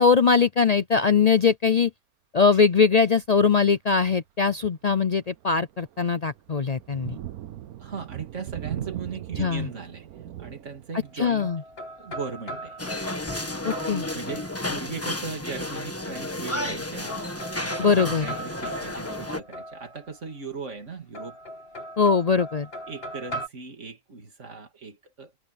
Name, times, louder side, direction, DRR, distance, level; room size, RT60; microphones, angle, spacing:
voice 1, 0.0-1.9 2.3-7.1 9.4-9.7 11.2-11.6 13.6-14.1 17.8-18.3 22.0-22.7, left 5 dB, 75° left, 0.3 m, -21 dB
Thunder, 3.2-3.5 4.1-4.2 4.7-15.2, right 12 dB, 75° right, 1.2 m, -41 dB
voice 2, 7.8-10.1 10.4-11.5 12.0-12.8 13.6-13.8 14.1-17.3 17.6-21.4 22.9-25.3, right 4 dB, 50° right, 3.0 m, -38 dB
sound 1, 11.0-14.9 16.1-16.8 17.1-20.3 21.1-23.5, right 1 dB, 40° left, 2.7 m, -39 dB
sound 2, 12.8-19.4, left 1 dB, 10° left, 1.3 m, -32 dB
omnidirectional pair, 1.6 m